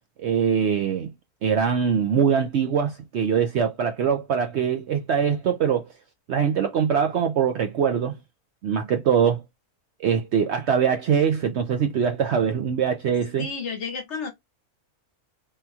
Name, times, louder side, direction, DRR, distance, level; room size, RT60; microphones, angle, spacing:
voice 1, 0.2-1.1 1.4-5.9 6.3-8.1 8.6-9.4 10.0-13.5, right 7 dB, 65° right, 0.7 m, -23 dB
voice 2, 13.4-14.3, left 5 dB, 55° left, 1.1 m, -31 dB
3.6 x 2.8 x 2.3 m
omnidirectional pair, 1.6 m